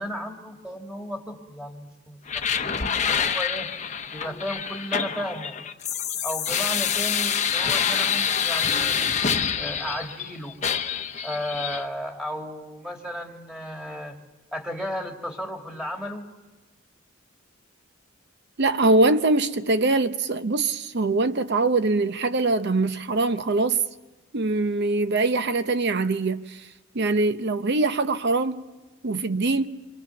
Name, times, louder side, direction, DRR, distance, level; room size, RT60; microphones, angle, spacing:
voice 1, 0.0-3.7 4.1-5.5 6.2-9.0 9.6-10.6 11.2-14.2 14.5-16.2, equal, 5° right, 2.1 m, -34 dB
sound 1, 2.3-10.3 10.6-11.8, left 7 dB, 35° left, 0.9 m, -26 dB
voice 2, 18.6-23.8 24.3-26.6 26.9-28.6 29.0-29.8, right 3 dB, 55° right, 0.8 m, -23 dB
27.0 x 24.5 x 7.0 m
head